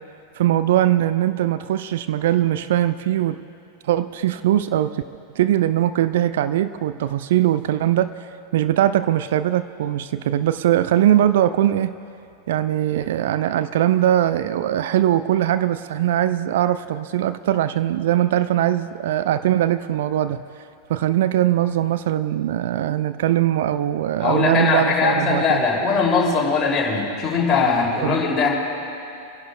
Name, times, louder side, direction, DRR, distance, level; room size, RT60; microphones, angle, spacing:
voice 1, 0.4-3.4 3.8-5.0 5.4-8.1 8.5-11.9 12.5-20.4 20.9-25.6 28.0-28.2, right 12 dB, 55° right, 13 dB, 0.3 m, -21 dB
voice 2, 24.2-28.5, left 4 dB, 25° left, -3 dB, 2.8 m, -20 dB
29.0 x 11.0 x 2.3 m, 2.6 s
figure-of-eight pair, 90°, 0 cm